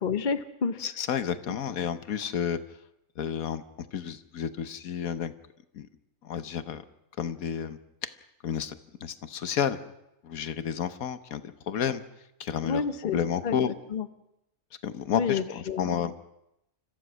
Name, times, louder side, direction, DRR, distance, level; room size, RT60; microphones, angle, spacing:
voice 1, 0.0-0.8 12.6-14.1 15.1-16.1, left 6 dB, 40° left, 11 dB, 0.9 m, -30 dB
voice 2, 0.8-2.6 3.2-3.6 3.9-5.3 5.7-5.9 6.2-6.8 7.2-7.8 8.4-8.7 9.0-9.8 10.2-12.0 12.4-13.7 14.8-16.2, left 8 dB, 85° left, 12 dB, 1.4 m, -31 dB
30.0 x 14.5 x 6.2 m, 0.85 s
omnidirectional pair, 1.4 m